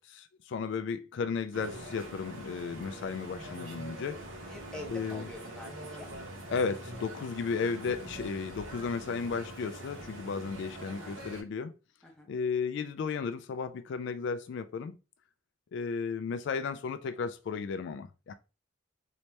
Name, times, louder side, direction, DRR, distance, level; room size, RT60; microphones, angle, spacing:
voice 1, 0.0-4.2 4.9-5.3 6.5-11.7 12.3-14.9 15.7-18.3, left 5 dB, 60° left, 0.3 m, -34 dB
sound 1, 1.5-11.4, right 1 dB, 80° right, 1.2 m, -44 dB
voice 2, 4.5-6.1 10.8-11.2 12.0-12.3, left 1 dB, 5° left, 0.7 m, -46 dB
3.1 x 2.9 x 3.1 m
head